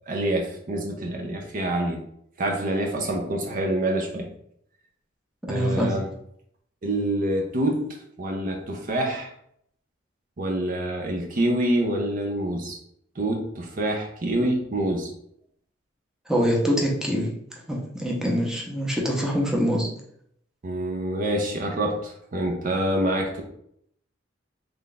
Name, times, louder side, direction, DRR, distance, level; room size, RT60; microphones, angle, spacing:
voice 1, 0.1-2.0 2.4-4.3 5.5-6.1 6.8-7.9 8.2-9.3 10.4-12.8 13.2-15.1 20.6-23.4, right 1 dB, 45° right, 1 dB, 0.6 m, -26 dB
voice 2, 5.5-5.9 16.3-17.3 17.7-19.9, equal, 5° right, -3 dB, 0.7 m, -24 dB
3.3 x 2.4 x 3.9 m, 0.69 s
head